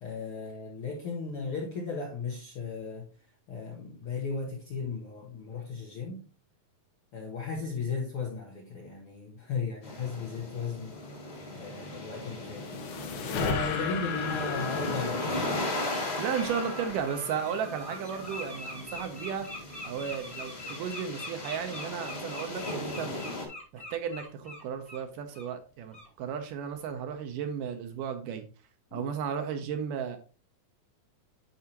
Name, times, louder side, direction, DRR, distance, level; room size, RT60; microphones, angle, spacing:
voice 1, 0.0-3.1 3.5-6.2 7.1-11.0 11.5-12.7 13.3-15.5 28.9-29.0, left 4 dB, 70° left, 1.3 m, -36 dB
sound 1, 9.8-23.4, left 2 dB, 30° left, 1.2 m, -37 dB
sound 2, 12.1-17.5, left 6 dB, 90° left, 2.9 m, -36 dB
Bird, 15.9-16.0 16.3-25.0 25.3-25.5 25.9-26.1, left 1 dB, 5° left, 0.8 m, -43 dB
voice 2, 16.2-19.5 19.8-23.2 23.7-28.4 28.9-30.2, right 7 dB, 75° right, 2.2 m, -34 dB
10.5 x 4.8 x 2.9 m
omnidirectional pair, 4.1 m